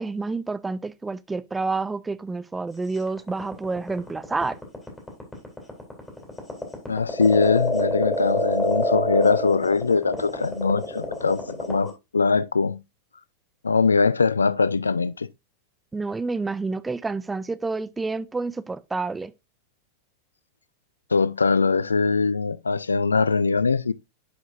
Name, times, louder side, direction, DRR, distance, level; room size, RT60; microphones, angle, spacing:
voice 1, 0.0-4.6 15.9-19.3, right 3 dB, 10° right, 0.4 m, -29 dB
sound 1, 3.0-11.9, left 1 dB, 10° left, 3.0 m, -27 dB
voice 2, 6.9-12.8 13.6-15.3 21.1-23.9, left 4 dB, 75° left, 0.3 m, -22 dB
10.0 x 5.0 x 2.6 m
figure-of-eight pair, 90°, 0 cm